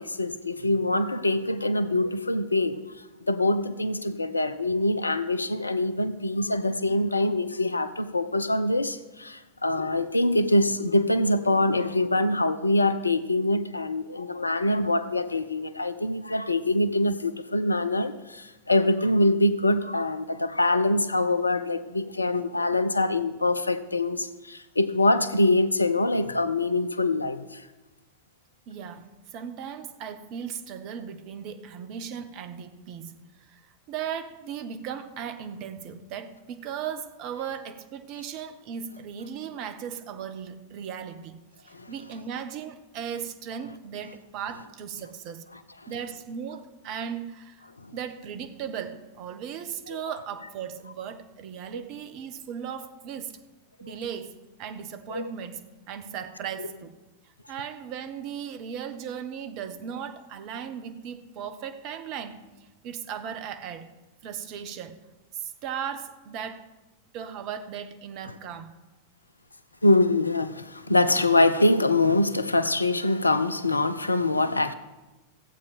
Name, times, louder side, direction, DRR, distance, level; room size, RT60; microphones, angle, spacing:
voice 1, 0.0-27.7 41.7-41.9 47.8-47.9 49.9-50.0 51.7-51.8 53.8-53.9 55.1-55.3 69.8-74.7, left 2 dB, 80° left, 0.6 m, -24 dB
voice 2, 28.7-45.5 45.9-47.7 47.9-53.4 53.8-57.0 57.2-63.9 64.2-65.0 65.3-66.7 67.1-68.7, right 8 dB, 40° right, 1.0 m, -37 dB
15.0 x 8.4 x 5.0 m
figure-of-eight pair, 90°, 0 cm